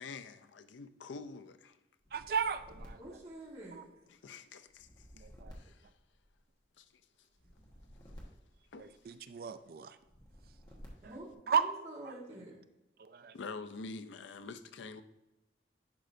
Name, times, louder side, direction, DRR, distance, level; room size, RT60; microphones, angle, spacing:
voice 1, 0.0-1.8 4.1-5.3 5.5-5.9 6.8-6.9 8.7-9.2 13.3-15.0, left 4 dB, 85° left, 0.5 m, -47 dB
sound 1, 2.0-4.0 4.7-6.6 7.3-9.3 10.0-11.3, equal, 20° left, 1.3 m, -55 dB
voice 2, 2.1-3.0 3.7-3.8 5.2-5.5 8.8-10.0 11.5-11.6 13.0-13.3, right 6 dB, 50° right, 0.4 m, -34 dB
voice 3, 3.0-3.8 11.0-11.3 11.6-12.6, right 1 dB, 35° right, 1.5 m, -47 dB
10.5 x 5.0 x 2.6 m
head